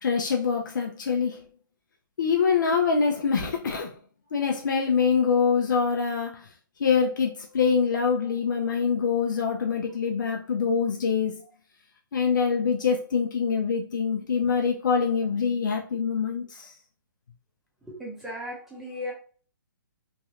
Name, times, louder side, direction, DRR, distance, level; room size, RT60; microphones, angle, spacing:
voice 1, 0.0-1.5 2.2-3.9 4.3-6.5 6.8-11.4 12.1-16.7, left 6 dB, 60° left, 0.5 m, -25 dB
voice 2, 17.9-19.1, left 1 dB, 5° right, 0.7 m, -36 dB
3.0 x 2.5 x 2.8 m
hypercardioid pair, 170°, 11 cm